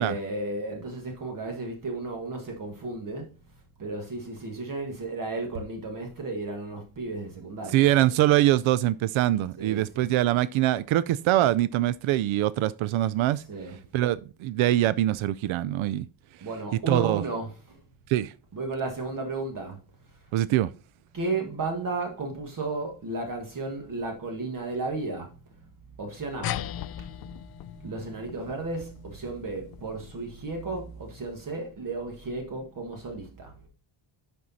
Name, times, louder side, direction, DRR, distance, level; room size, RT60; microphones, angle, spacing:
voice 1, 0.0-3.3 3.8-7.9 9.6-10.1 13.5-13.8 16.4-17.8 18.5-19.8 21.1-25.3 26.0-26.6 27.8-33.6, right 3 dB, 45° right, 1.6 m, -34 dB
voice 2, 7.7-13.4 13.9-16.1 16.9-17.2 18.1-18.3 20.3-20.7, right 14 dB, 90° right, 0.5 m, -23 dB
sound 1, 26.4-31.3, left 12 dB, 50° left, 0.5 m, -39 dB
11.0 x 4.4 x 4.1 m
cardioid pair, 170°, 46 cm